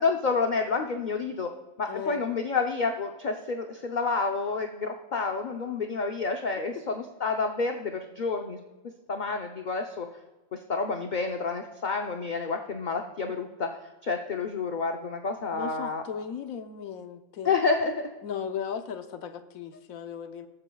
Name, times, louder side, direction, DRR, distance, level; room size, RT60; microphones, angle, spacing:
voice 1, 0.0-1.5 1.8-8.6 9.1-10.1 10.5-13.7 14.0-16.0 17.4-18.1, left 4 dB, 45° left, 4 dB, 0.6 m, -29 dB
voice 2, 1.9-2.2 15.5-17.6 18.2-20.5, left 7 dB, 80° left, 8 dB, 1.2 m, -36 dB
20.0 x 8.1 x 2.3 m, 1.2 s
omnidirectional pair, 1.4 m